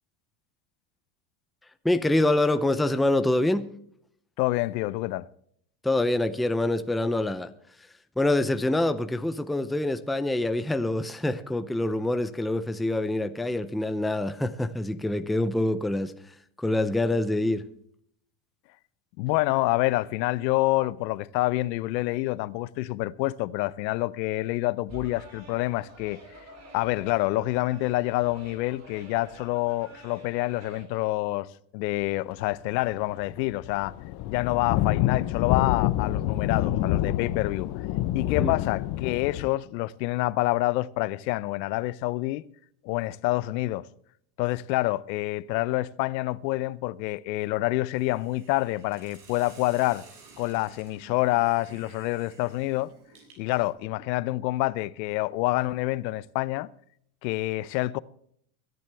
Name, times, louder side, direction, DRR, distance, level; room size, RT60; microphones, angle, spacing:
voice 1, 1.8-3.7 5.8-7.5 8.2-16.1 16.6-17.7 38.4-38.5, left 1 dB, ahead, 0.5 m, -25 dB
voice 2, 4.4-5.3 19.2-26.2 26.7-31.5 31.7-33.9 34.2-37.7 38.1-42.5 42.8-43.9 44.4-50.0 50.4-52.9 53.4-56.7 57.2-58.0, left 19 dB, 90° left, 0.8 m, -27 dB
sound 1, 24.9-30.8, right 1 dB, 30° right, 3.5 m, -48 dB
sound 2, 32.8-33.0 33.2-39.5, left 14 dB, 50° left, 0.9 m, -27 dB
Hiss, 47.9-53.7, right 4 dB, 60° right, 6.9 m, -53 dB
23.0 x 11.0 x 3.4 m
supercardioid pair, 130°, 50 cm